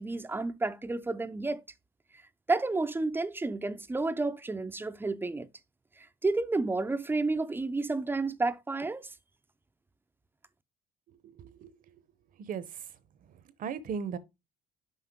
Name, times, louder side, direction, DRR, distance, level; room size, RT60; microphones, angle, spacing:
voice 1, 0.0-1.6 2.5-5.5 6.0-9.1, right 3 dB, 10° right, 0.5 m, -31 dB
voice 2, 11.4-11.7 12.5-12.6 13.6-14.2, right 6 dB, 55° right, 0.8 m, -35 dB
5.7 x 5.3 x 3.5 m
cardioid pair, 110°, 17 cm